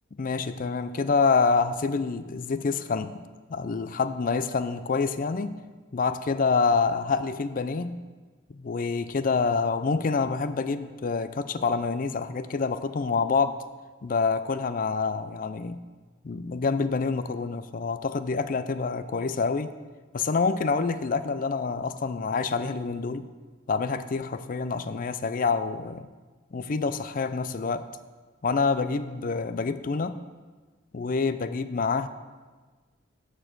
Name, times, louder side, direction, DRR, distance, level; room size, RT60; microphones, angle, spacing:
voice 1, 0.1-3.2 3.5-5.6 5.9-8.0 8.5-13.6 14.0-15.8 16.2-19.8 20.1-23.3 23.7-26.1 26.5-27.9 28.4-30.2 30.9-32.1, left 4 dB, 45° left, 12 dB, 0.4 m, -27 dB
13.5 x 4.5 x 6.0 m, 1.4 s
head